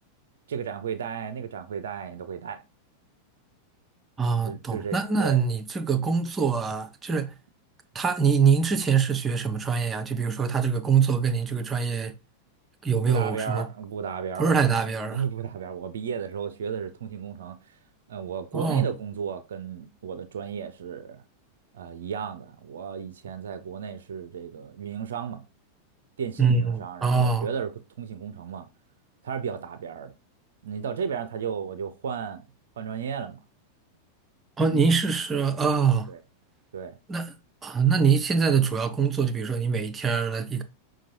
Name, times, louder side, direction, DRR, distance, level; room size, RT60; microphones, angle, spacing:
voice 1, 0.5-2.6 4.4-5.4 13.0-17.8 18.1-21.2 21.7-25.4 26.2-28.7 29.2-30.1 30.6-32.4 32.8-33.4 34.7-34.9 35.5-35.6 36.1-36.2 36.7-37.0, right 7 dB, 60° right, 0.4 m, -34 dB
voice 2, 4.2-7.3 7.9-12.1 12.8-13.7 14.4-15.2 18.5-18.9 26.4-27.5 34.6-36.1 37.1-37.3 37.6-40.6, right 5 dB, 20° right, 0.6 m, -24 dB
5.9 x 2.2 x 2.8 m
figure-of-eight pair, 90°, 0 cm